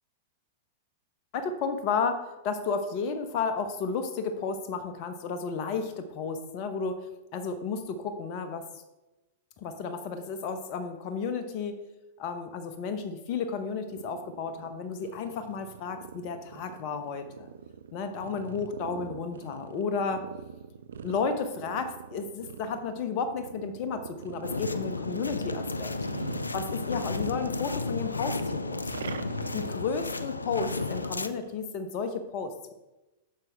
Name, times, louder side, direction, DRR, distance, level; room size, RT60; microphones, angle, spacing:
voice 1, 1.3-8.7 9.6-11.8 12.2-17.5 17.9-20.2 21.0-25.9 26.5-28.9 29.5-32.7, left 5 dB, 45° left, 8 dB, 1.0 m, -32 dB
sound 1, 13.5-27.3 27.6-31.5, right 7 dB, 65° right, 0.4 m, -44 dB
sound 2, 24.4-31.3, left 3 dB, 85° left, 0.4 m, -33 dB
8.8 x 7.0 x 3.6 m, 1.0 s
figure-of-eight pair, 100°, 0 cm